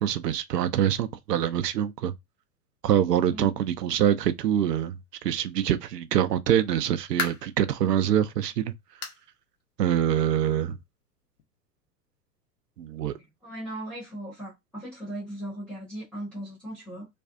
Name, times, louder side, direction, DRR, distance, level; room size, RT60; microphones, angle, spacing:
voice 1, 0.0-2.1 2.8-5.0 5.2-8.7 9.8-10.8 12.8-13.1, right 10 dB, 75° right, 0.5 m, -25 dB
sound 1, 6.6-7.6 8.1-8.2 9.0-9.3 9.6-9.7 10.2-10.3 11.4-11.5, left 4 dB, 65° left, 0.8 m, -34 dB
voice 2, 13.1-17.1, right 1 dB, 5° left, 0.3 m, -38 dB
2.5 x 2.3 x 2.3 m
figure-of-eight pair, 95°, 49 cm